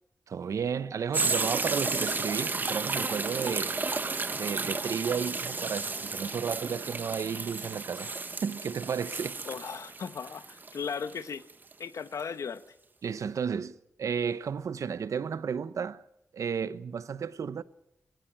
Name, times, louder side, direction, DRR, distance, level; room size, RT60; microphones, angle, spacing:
voice 1, 0.3-3.8 4.3-8.1 8.4-9.4 13.0-16.0 16.3-17.6, right 6 dB, 75° right, 0.8 m, -33 dB
sound 1, 1.1-11.7 12.2-12.3, right 3 dB, 35° right, 1.1 m, -33 dB
voice 2, 9.5-11.4 11.8-12.6, left 6 dB, 75° left, 1.1 m, -36 dB
21.5 x 17.0 x 8.9 m
wide cardioid pair, 135°, 5 cm